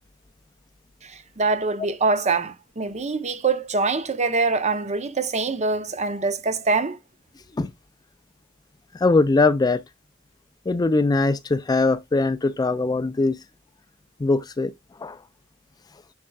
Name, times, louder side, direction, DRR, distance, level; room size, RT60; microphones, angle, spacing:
voice 1, 1.0-7.0, right 3 dB, 35° right, 0.8 m, -24 dB
voice 2, 8.9-9.8 10.7-13.4 14.2-14.7 15.0-15.2, left 3 dB, 20° left, 0.3 m, -21 dB
8.4 x 6.3 x 2.3 m
head